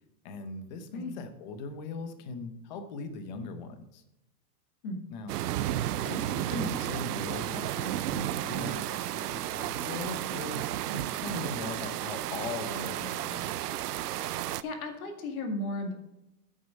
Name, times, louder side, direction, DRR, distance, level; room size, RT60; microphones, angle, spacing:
voice 1, 0.2-4.0 5.1-5.4 6.0-13.5, left 3 dB, 30° left, 9 dB, 0.8 m, -39 dB
sound 1, 5.3-14.6, right 13 dB, 70° right, 0.6 m, -33 dB
voice 2, 14.2-15.9, left 2 dB, 60° left, 4 dB, 2.2 m, -36 dB
9.0 x 6.6 x 5.3 m, 0.89 s
supercardioid pair, 170°, 49 cm